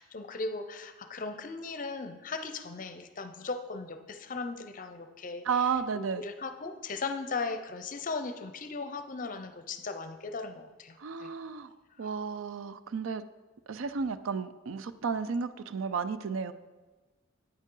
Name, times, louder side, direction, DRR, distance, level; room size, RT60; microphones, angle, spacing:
voice 1, 0.0-11.3, left 3 dB, 40° left, 9 dB, 0.6 m, -38 dB
voice 2, 5.5-6.2 11.0-11.7 12.0-13.2 13.7-16.5, right 6 dB, 80° right, 13 dB, 0.4 m, -32 dB
9.0 x 8.2 x 3.8 m, 1.2 s
head